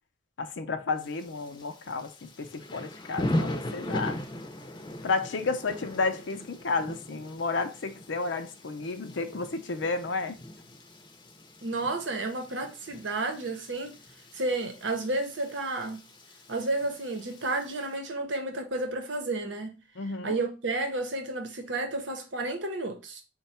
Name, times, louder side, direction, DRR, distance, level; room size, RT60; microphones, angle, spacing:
voice 1, 0.4-4.2 5.0-10.4 20.0-20.3, left 4 dB, 75° left, 0.5 m, -32 dB
Thunder / Rain, 1.0-17.9, left 1 dB, 25° left, 0.6 m, -39 dB
voice 2, 11.6-14.0 14.3-16.0 16.5-19.8 20.2-23.2, right 2 dB, 75° right, 0.9 m, -31 dB
4.5 x 2.2 x 4.1 m
head